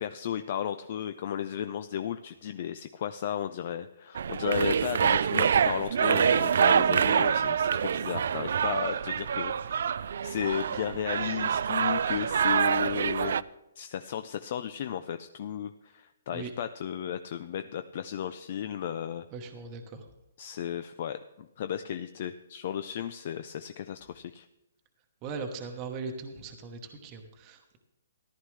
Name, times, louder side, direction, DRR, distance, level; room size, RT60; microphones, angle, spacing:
voice 1, 0.0-13.4 13.8-19.3 20.4-24.5, left 9 dB, 40° left, 10 dB, 0.4 m, -34 dB
sound 1, 4.1-13.4, right 7 dB, 60° right, 0.3 m, -26 dB
voice 2, 19.3-20.0 25.2-27.8, right 4 dB, 20° right, 3 dB, 1.0 m, -39 dB
14.5 x 11.5 x 3.2 m, 0.94 s
hypercardioid pair, 170°, 0 cm